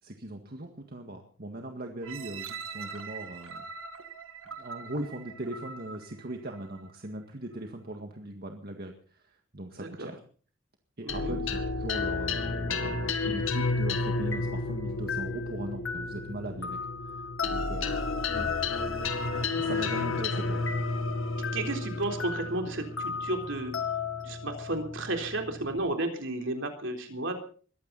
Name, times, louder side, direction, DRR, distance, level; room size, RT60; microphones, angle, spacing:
voice 1, 0.0-3.7 4.6-10.2 11.0-17.2 17.4-18.5 19.6-20.6, right 1 dB, 50° right, 4 dB, 1.9 m, -39 dB
sound 1, 2.0-7.0 7.5-7.6, right 5 dB, 80° right, 1.9 m, -43 dB
voice 2, 9.8-10.1 11.0-11.4 21.5-23.7 24.2-27.3, right 2 dB, 65° right, 4 dB, 3.8 m, -33 dB
sound 2, 11.1-25.8, left 3 dB, 70° left, 2.2 m, -31 dB
22.0 x 15.0 x 4.2 m, 0.42 s
head